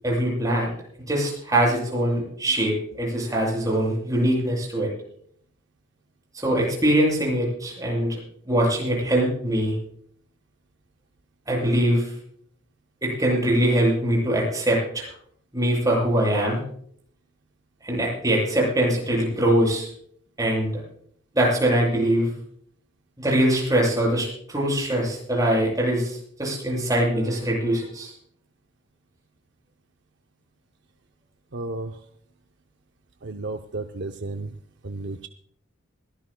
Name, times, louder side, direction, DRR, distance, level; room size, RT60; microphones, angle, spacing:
voice 1, 0.0-0.7 1.1-4.9 6.3-8.2 8.5-9.7 11.5-12.1 13.0-15.1 15.5-16.6 17.8-19.9 20.4-20.8 21.3-22.3 23.2-28.1, right 1 dB, 15° right, -3 dB, 7.3 m, -22 dB
voice 2, 31.5-31.9 33.4-34.3 35.0-35.3, right 2 dB, 60° right, 6 dB, 0.6 m, -32 dB
22.0 x 17.0 x 2.2 m, 0.64 s
head